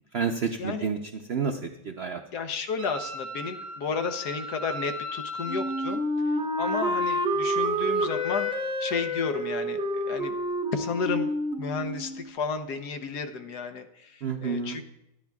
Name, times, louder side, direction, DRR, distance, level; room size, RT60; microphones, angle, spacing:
voice 1, 0.1-1.0 1.3-2.2 14.2-14.8, right 5 dB, 75° right, 4 dB, 0.5 m, -29 dB
voice 2, 2.3-6.0 6.6-8.5 8.8-10.3 10.7-14.8, left 5 dB, 65° left, 7 dB, 1.3 m, -32 dB
Wind instrument woodwind instrument, 2.8-6.0, equal, 45° right, 2.0 m, -37 dB
Wind instrument woodwind instrument 2, 5.5-12.3, equal, 5° right, 0.5 m, -28 dB
23.5 x 9.9 x 2.3 m, 0.84 s
omnidirectional pair, 2.0 m